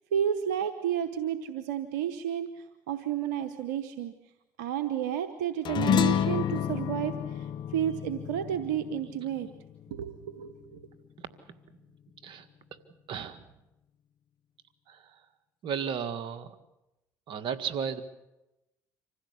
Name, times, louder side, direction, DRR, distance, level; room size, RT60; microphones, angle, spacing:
voice 1, 0.1-2.5 2.9-4.1 4.6-9.5 9.9-10.8, right 10 dB, 85° right, 10 dB, 0.9 m, -31 dB
sound 1, 5.6-10.3, left 8 dB, 55° left, 0.9 m, -30 dB
voice 2, 13.1-13.4 14.9-15.2 15.6-16.6 17.3-18.0, right 7 dB, 65° right, 11 dB, 1.7 m, -34 dB
25.5 x 16.0 x 8.3 m, 0.95 s
hypercardioid pair, 60°, 9 cm